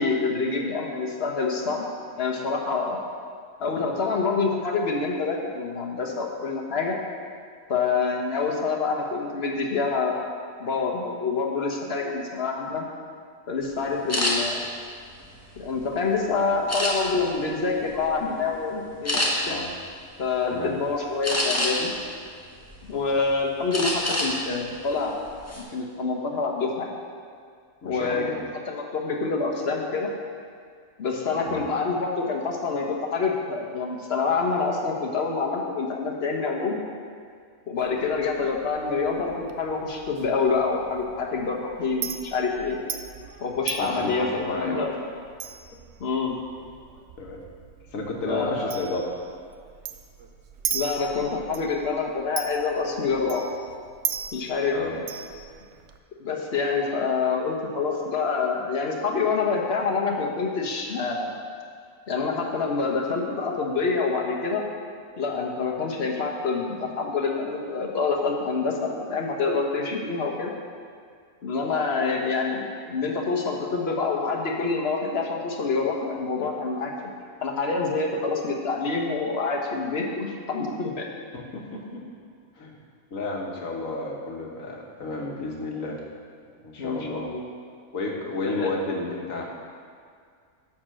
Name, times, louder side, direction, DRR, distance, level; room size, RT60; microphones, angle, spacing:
voice 1, 0.0-1.8 2.2-3.0 3.6-7.0 7.7-10.3 10.6-12.8 13.5-14.6 15.6-19.6 20.2-21.9 22.9-25.2 25.7-27.0 27.8-28.3 28.7-30.1 31.0-36.8 37.7-42.8 43.4-44.9 46.0-46.4 48.2-48.7 50.7-53.4 54.3-55.0 56.2-61.4 62.1-64.6 65.2-70.6 71.4-76.9 77.4-81.1 86.8-87.5 88.4-88.7, left 4 dB, 50° left, 0 dB, 1.3 m, -26 dB
sound 1, 14.1-14.3 15.0-16.0 16.7-17.3 17.8-18.0 18.4-18.5 19.0-19.3 21.2-21.9 22.4-23.2 23.7-24.3 24.7-24.8 25.3-25.6, left 1 dB, 10° left, 1.4 m, -26 dB
voice 2, 27.8-28.4 31.4-31.7 43.8-44.9 47.2-47.4 47.9-49.0 54.7-55.0 81.3-82.0 82.6-82.8 83.1-86.0 86.6-87.3 87.9-89.4, left 2 dB, 70° left, -1 dB, 1.7 m, -32 dB
Chink clink, 37.8-56.0, right 7 dB, 60° right, 0.9 m, -39 dB
11.5 x 4.4 x 7.6 m, 2.1 s
omnidirectional pair, 1.5 m